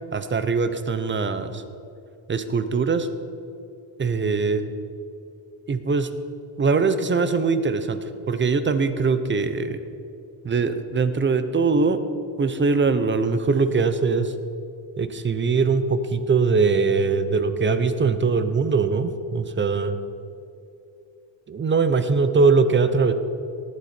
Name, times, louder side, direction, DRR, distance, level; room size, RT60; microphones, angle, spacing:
voice 1, 0.1-1.6 2.3-3.1 4.0-4.6 5.7-6.1 6.6-8.0 8.3-9.8 10.4-12.0 12.4-14.3 15.0-19.9 21.5-23.1, right 4 dB, 25° right, 10 dB, 0.8 m, -21 dB
19.0 x 7.9 x 4.4 m, 2.7 s
cardioid pair, 115°, 45 cm